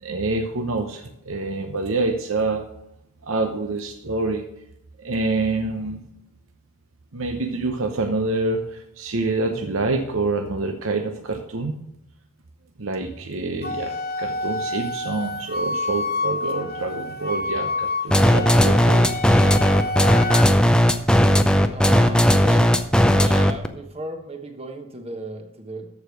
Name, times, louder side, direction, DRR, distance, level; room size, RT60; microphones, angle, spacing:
voice 1, 0.0-2.6 3.2-4.4 5.0-6.0 7.1-11.8 12.8-19.1 20.2-20.3, right 3 dB, 70° right, 5 dB, 0.9 m, -26 dB
Wind instrument woodwind instrument, 13.6-20.5, left 2 dB, 45° left, 0.7 m, -28 dB
sound 1, 18.1-23.7, equal, 5° left, 0.5 m, -16 dB
voice 2, 21.7-22.7 23.1-25.9, right 1 dB, 25° right, 5 dB, 1.1 m, -34 dB
14.0 x 4.9 x 6.3 m, 0.84 s
head